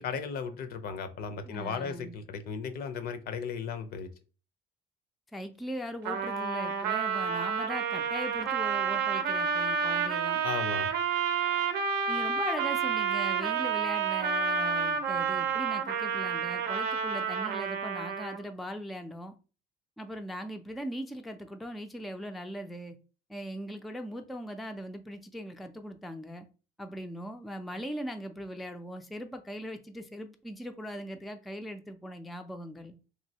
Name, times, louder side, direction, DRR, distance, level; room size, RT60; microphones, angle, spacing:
voice 1, 0.0-4.1 10.4-10.9, left 6 dB, 65° left, 0.5 m, -36 dB
voice 2, 1.4-2.2 5.3-10.4 12.1-19.3 20.0-23.0 23.3-26.5 26.8-32.9, equal, ahead, 0.3 m, -40 dB
Trumpet, 6.0-18.5, right 6 dB, 80° right, 0.5 m, -30 dB
3.1 x 2.6 x 2.7 m
cardioid pair, 110°, 17 cm